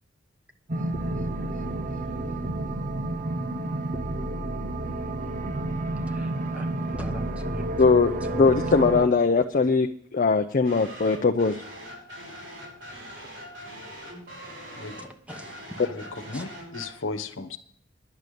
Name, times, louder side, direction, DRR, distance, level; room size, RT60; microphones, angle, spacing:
industrial sky, 0.7-9.1, right 2 dB, 45° right, 0.7 m, -30 dB
voice 1, 6.1-6.7 7.0-7.7 14.8-15.8 16.3-16.4, equal, 5° right, 6 dB, 1.1 m, -42 dB
voice 2, 7.8-11.6 15.8-15.9, left 4 dB, 45° left, 5 dB, 0.6 m, -21 dB
sound 1, 10.6-16.9, equal, 70° right, 6.1 m, -42 dB
voice 3, 15.8-17.6, left 3 dB, 85° left, 9 dB, 1.1 m, -35 dB
11.0 x 6.8 x 9.1 m, 0.63 s
head